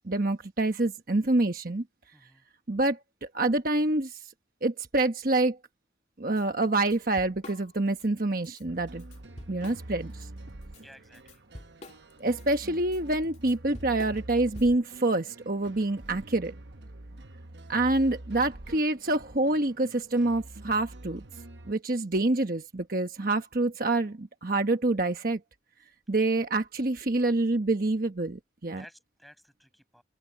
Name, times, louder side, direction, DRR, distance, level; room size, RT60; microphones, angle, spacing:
voice 1, 0.0-1.8 2.7-4.2 4.6-5.6 6.2-9.0 9.5-10.3 12.2-16.5 17.7-21.2 21.7-25.4 26.1-28.8, right 2 dB, 50° right, 1.2 m, -27 dB
voice 2, 2.1-2.5 10.8-11.4 28.7-30.0, equal, ahead, 7.6 m, -54 dB
Drum kit / Drum, 6.4-6.5 6.8-8.1 8.4-8.6 9.0-10.3 10.6-15.0, left 1 dB, 40° left, 2.5 m, -47 dB
sound 1, 8.7-21.7, right 1 dB, 70° right, 1.1 m, -46 dB
open air
head